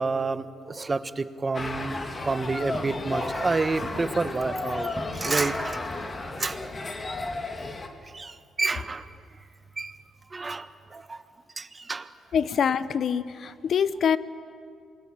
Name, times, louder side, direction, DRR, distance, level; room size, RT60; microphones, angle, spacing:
voice 1, 0.0-5.8 6.4-6.7 8.1-9.1 9.8-10.0 10.3-11.2 11.6-12.1, right 3 dB, 25° right, 12 dB, 1.2 m, -29 dB
sound 1, 1.5-7.9, left 2 dB, 30° left, 2.6 m, -33 dB
Walk footsteps, 2.0-6.4, right 1 dB, 10° right, 7.2 m, -44 dB
voice 2, 12.3-14.2, left 7 dB, 60° left, 15 dB, 1.0 m, -25 dB
27.5 x 21.0 x 8.9 m, 2.4 s
cardioid pair, 90°, 0 cm